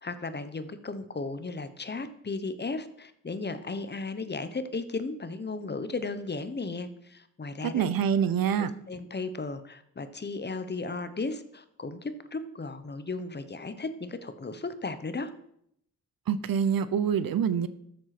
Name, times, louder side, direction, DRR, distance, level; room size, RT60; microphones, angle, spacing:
voice 1, 0.0-7.9 8.9-15.3, left 3 dB, 30° left, 11 dB, 1.0 m, -35 dB
voice 2, 7.6-8.7 16.3-17.7, right 8 dB, 75° right, 15 dB, 0.9 m, -26 dB
13.0 x 7.8 x 6.0 m, 0.74 s
wide cardioid pair, 115°, 35 cm